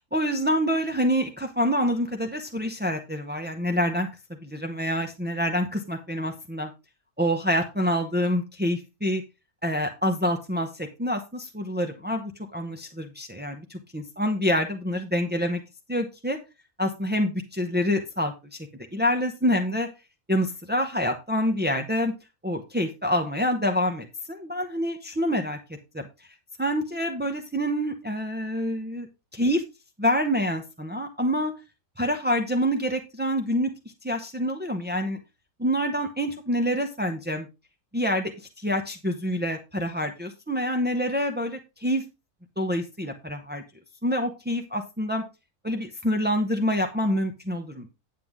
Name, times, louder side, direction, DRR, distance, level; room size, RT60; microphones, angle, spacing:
voice 1, 0.1-4.1 4.4-6.7 7.2-9.2 9.6-15.6 15.9-16.4 16.8-18.6 18.9-19.9 20.3-22.1 22.4-25.6 25.9-26.0 26.6-29.1 29.3-29.6 30.0-31.5 32.0-33.7 34.0-35.2 35.6-37.5 37.9-38.3 38.6-42.0 42.6-43.6 44.0-45.2 45.6-47.9, equal, 15° right, 3 dB, 0.4 m, -26 dB
9.4 x 7.7 x 3.6 m, 0.27 s
omnidirectional pair, 1.6 m